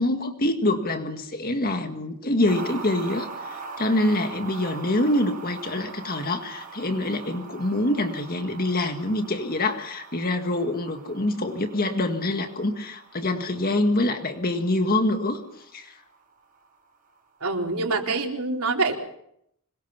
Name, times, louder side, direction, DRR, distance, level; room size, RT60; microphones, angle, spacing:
voice 1, 0.0-15.4 15.7-16.0, left 1 dB, 40° left, 6 dB, 1.9 m, -25 dB
sound 1, 2.4-16.9 17.2-17.3, right 4 dB, 40° right, 5.2 m, -42 dB
voice 2, 17.4-19.0, right 3 dB, 90° right, 2 dB, 4.1 m, -25 dB
26.0 x 23.0 x 5.9 m, 0.74 s
head